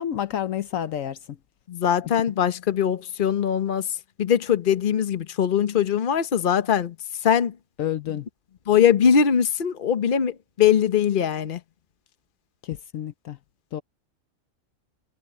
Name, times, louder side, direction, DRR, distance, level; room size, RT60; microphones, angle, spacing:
voice 1, 0.0-1.4 7.8-8.3 12.6-13.4 13.7-13.8, left 10 dB, 75° left, 1.1 m, -29 dB
voice 2, 1.7-3.9 4.2-6.9 7.2-7.6 8.7-11.6, left 8 dB, 40° left, 1.1 m, -21 dB
omnidirectional pair, 1.4 m